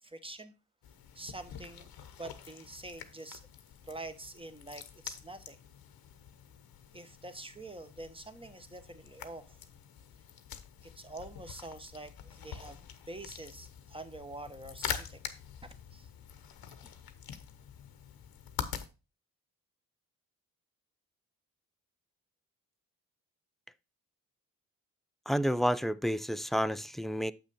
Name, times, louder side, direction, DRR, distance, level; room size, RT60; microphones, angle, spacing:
voice 1, 0.0-0.5 1.1-1.9 2.2-3.4 3.8-5.6 6.9-9.6 10.8-15.2 15.9-16.1, right 2 dB, 15° right, 1.2 m, -46 dB
sound 1, 0.8-18.9, left 9 dB, 80° left, 1.0 m, -45 dB
voice 2, 25.3-27.3, equal, ahead, 0.3 m, -30 dB
7.5 x 6.0 x 4.2 m
cardioid pair, 70°, 36 cm